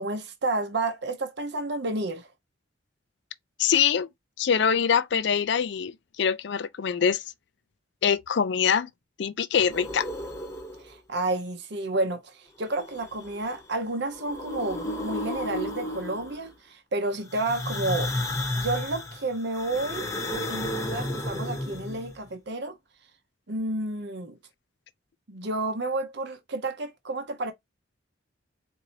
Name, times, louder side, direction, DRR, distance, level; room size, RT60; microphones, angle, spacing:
voice 1, 0.0-2.3 10.8-18.1 18.6-22.8 23.5-24.4 25.3-27.5, right 2 dB, 60° right, 0.7 m, -31 dB
voice 2, 3.6-4.1 4.4-7.2 8.0-8.9 9.2-10.1, left 7 dB, 60° left, 0.4 m, -24 dB
sound 1, 9.7-11.0 12.7-13.6 14.0-16.5 17.3-22.2, left 1 dB, 15° left, 0.8 m, -33 dB
4.2 x 2.7 x 2.7 m
head